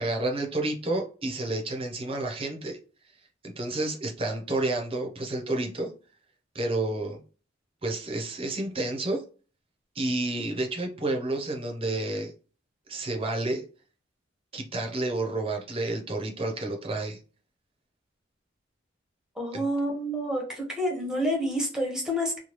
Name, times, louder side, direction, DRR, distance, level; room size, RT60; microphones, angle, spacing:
voice 1, 0.0-2.8 3.4-5.9 6.5-7.2 7.8-9.2 9.9-12.3 12.9-13.6 14.5-17.2 19.5-19.6, right 2 dB, 30° right, 2 dB, 0.7 m, -30 dB
voice 2, 19.4-22.4, equal, 5° right, -1 dB, 0.9 m, -28 dB
3.1 x 2.2 x 2.9 m, 0.37 s
head